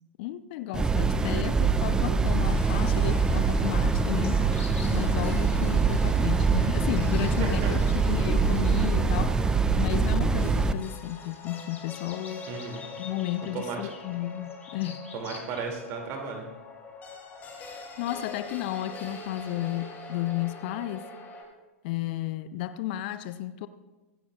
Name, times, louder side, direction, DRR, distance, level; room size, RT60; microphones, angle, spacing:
voice 1, 0.2-7.8 8.0-9.4 9.8-12.4 13.0-15.1 17.7-21.0 21.8-23.7, left 14 dB, 45° left, 0.5 m, -33 dB
sound 1, 0.7-10.7, right 4 dB, 10° right, 0.5 m, -24 dB
sound 2, 2.4-21.4, left 4 dB, 20° left, 3.0 m, -44 dB
sound 3, 4.2-5.0 9.7-9.8 10.7-15.7, left 5 dB, 75° left, 2.6 m, -47 dB
voice 2, 7.4-7.9 12.5-12.8 13.5-13.9 15.1-16.5, right 5 dB, 35° right, 2.5 m, -35 dB
24.5 x 10.5 x 2.4 m
figure-of-eight pair, 100°, 7 cm